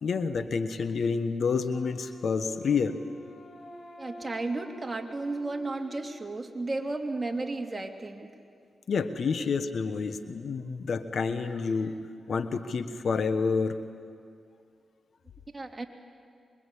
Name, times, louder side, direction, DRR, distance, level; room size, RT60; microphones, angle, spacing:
voice 1, 0.0-3.0 8.9-12.0 12.3-13.8, left 5 dB, 65° left, 10 dB, 1.3 m, -29 dB
Wind instrument woodwind instrument, 1.7-6.7, left 1 dB, 50° left, 2.9 m, -49 dB
voice 2, 4.0-8.3 9.4-9.5 15.5-15.9, right 2 dB, 30° right, 3 dB, 2.9 m, -33 dB
25.5 x 23.0 x 8.5 m, 2.3 s
supercardioid pair, 45°, 0 cm